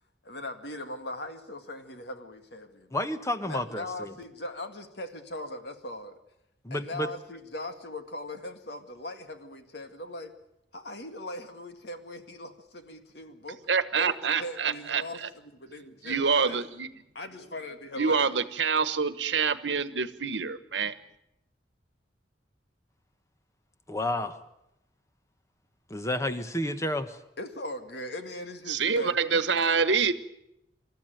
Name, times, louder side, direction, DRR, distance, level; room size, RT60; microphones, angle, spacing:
voice 1, 0.2-2.9 3.4-6.2 6.7-10.3 10.7-13.6 14.0-16.6 17.1-18.4 27.4-29.7, left 1 dB, 65° left, 7 dB, 2.1 m, -40 dB
voice 2, 2.9-4.1 6.6-7.1 23.9-24.4 25.9-27.2, left 1 dB, 15° left, 9 dB, 1.3 m, -30 dB
voice 3, 13.7-15.3 16.0-16.9 18.0-20.9 28.7-30.1, right 5 dB, 80° right, 13 dB, 1.2 m, -26 dB
27.0 x 14.0 x 9.2 m, 0.84 s
head